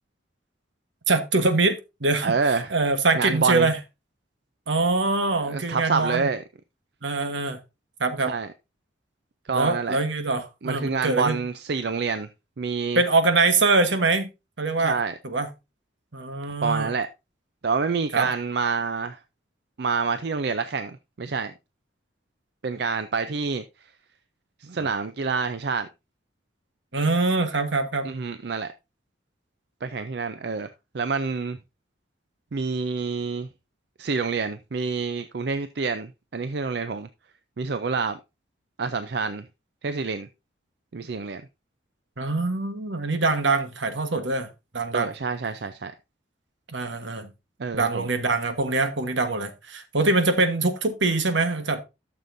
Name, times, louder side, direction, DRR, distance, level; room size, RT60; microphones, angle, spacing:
voice 1, 1.1-3.8 4.7-6.3 7.0-7.6 8.0-8.3 9.5-11.4 12.9-14.3 14.6-15.0 15.2-15.5 16.1-16.9 18.1-18.3 26.9-28.1 42.2-44.5 44.7-45.1 46.7-47.3 47.7-51.8, right 3 dB, 80° right, 1.3 m, -24 dB
voice 2, 2.2-2.7 3.1-3.7 5.4-6.4 8.3-8.5 9.5-10.0 10.6-12.3 12.6-13.0 14.8-15.1 16.6-17.1 17.6-19.2 19.8-21.5 22.6-23.6 24.6-25.9 28.0-28.7 29.8-30.7 30.9-31.6 32.5-33.5 34.0-37.1 37.6-38.2 38.8-39.5 39.8-40.3 40.9-41.4 44.9-45.9 47.6-48.1, right 4 dB, 60° right, 0.5 m, -27 dB
12.5 x 6.8 x 2.6 m
head